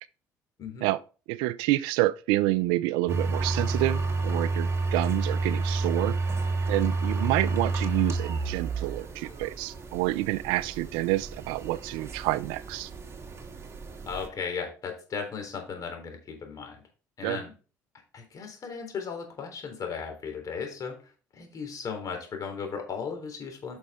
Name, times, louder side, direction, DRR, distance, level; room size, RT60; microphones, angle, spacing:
voice 1, 1.3-6.2 6.7-12.9 17.2-17.4, right 18 dB, 80° right, 0.5 m, -28 dB
sound 1, 3.1-14.3, right 3 dB, 35° right, 2.0 m, -30 dB
voice 2, 14.1-16.8 17.2-17.5 18.1-21.0 21.3-23.8, left 6 dB, 45° left, 3.6 m, -36 dB
9.5 x 6.3 x 3.6 m
hypercardioid pair, 65°, 8 cm